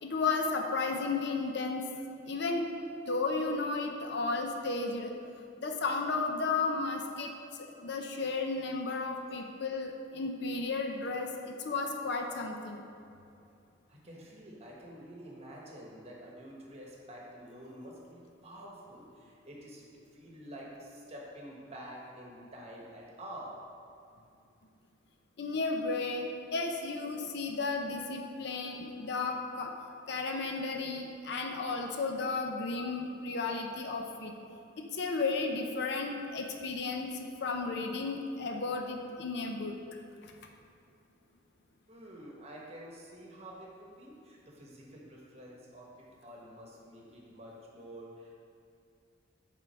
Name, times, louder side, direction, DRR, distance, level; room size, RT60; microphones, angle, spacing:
voice 1, 0.0-1.8 2.3-2.7 3.1-5.1 5.6-7.3 7.6-12.8 25.4-29.7 30.1-34.3 34.8-39.7, left 3 dB, 60° left, 3 dB, 0.6 m, -33 dB
voice 2, 13.9-19.8 20.1-23.6 41.9-48.3, equal, 35° right, -3 dB, 1.2 m, -48 dB
8.0 x 3.8 x 4.4 m, 2.6 s
head